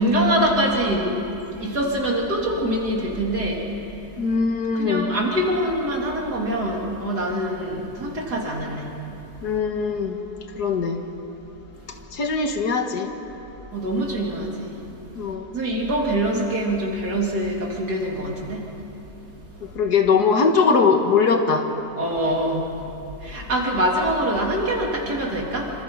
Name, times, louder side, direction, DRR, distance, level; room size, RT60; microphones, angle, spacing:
voice 1, 0.0-3.6 4.7-8.9 13.7-14.7 15.5-18.6 22.0-22.7 23.2-25.7, right 1 dB, 80° right, -2 dB, 4.0 m, -24 dB
voice 2, 4.2-5.1 9.4-10.2 10.6-11.0 12.1-13.1 15.2-15.5 19.8-21.7, left 5 dB, 80° left, 5 dB, 2.1 m, -21 dB
26.5 x 25.0 x 5.6 m, 2.8 s
omnidirectional pair, 1.7 m